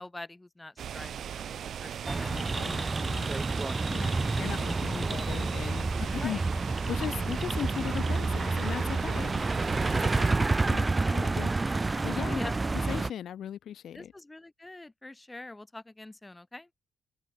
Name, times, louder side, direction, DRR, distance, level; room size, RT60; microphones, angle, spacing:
voice 1, 0.0-2.9 3.7-3.8 6.2-6.4 9.2-9.3 10.0-10.1 11.0-11.1 12.3-12.6 13.9-16.7, left 2 dB, 15° left, 1.3 m, -44 dB
sound 1, 0.8-10.3, right 9 dB, 60° right, 1.7 m, -39 dB
sound 2, 2.0-13.1, right 3 dB, 20° right, 0.6 m, -29 dB
voice 2, 2.3-3.4 3.9-6.4 6.9-9.4 10.0-10.3 10.7-12.5 12.9-14.1, left 10 dB, 65° left, 2.5 m, -38 dB
open air
cardioid pair, 90°, 0 cm